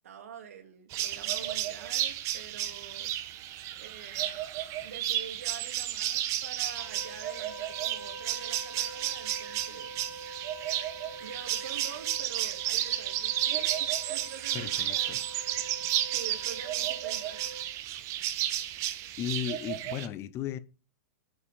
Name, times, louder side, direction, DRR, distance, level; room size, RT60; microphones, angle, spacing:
voice 1, 0.0-3.1 3.8-4.5 4.8-9.9 11.0-15.3 16.1-17.6, right 7 dB, 70° right, 2.5 m, -46 dB
sound 1, 0.9-20.1, right 13 dB, 40° right, 1.2 m, -32 dB
sound 2, 6.8-17.6, right 2 dB, 85° left, 2.7 m, -46 dB
voice 2, 14.5-15.2 19.2-20.6, left 10 dB, 35° left, 0.8 m, -35 dB
9.3 x 5.6 x 5.0 m
figure-of-eight pair, 105°, 8 cm